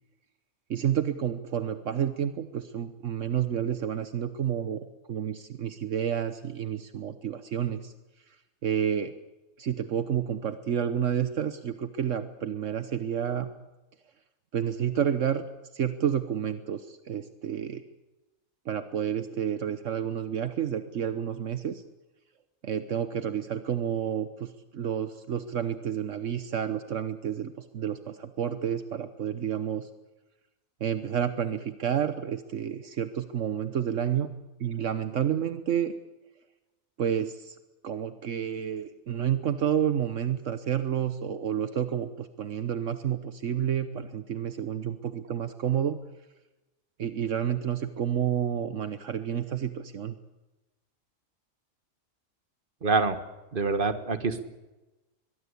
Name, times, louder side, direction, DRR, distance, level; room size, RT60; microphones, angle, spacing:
voice 1, 0.7-7.9 8.6-9.1 9.6-13.5 14.5-15.4 15.7-17.8 18.7-21.8 22.6-29.9 30.8-34.3 34.6-35.9 37.0-37.6 37.8-46.0 47.0-50.2, right 9 dB, 70° right, 11 dB, 1.3 m, -30 dB
voice 2, 52.8-53.2 53.5-54.4, right 4 dB, 40° right, 10 dB, 1.8 m, -25 dB
22.5 x 22.0 x 8.4 m, 1.1 s
omnidirectional pair, 1.3 m